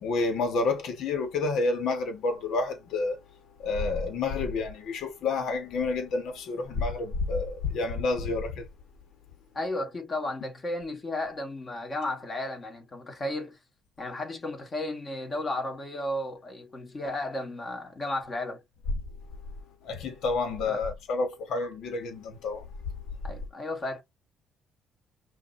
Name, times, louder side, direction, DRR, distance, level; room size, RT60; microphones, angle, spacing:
voice 1, 0.0-3.2 3.6-8.7 19.8-22.6, left 3 dB, 70° left, 1.5 m, -29 dB
voice 2, 9.5-13.6 14.0-18.6 20.7-20.8 23.2-24.0, left 1 dB, 30° left, 2.1 m, -34 dB
5.8 x 2.8 x 2.7 m
cardioid pair, 105°, 0 cm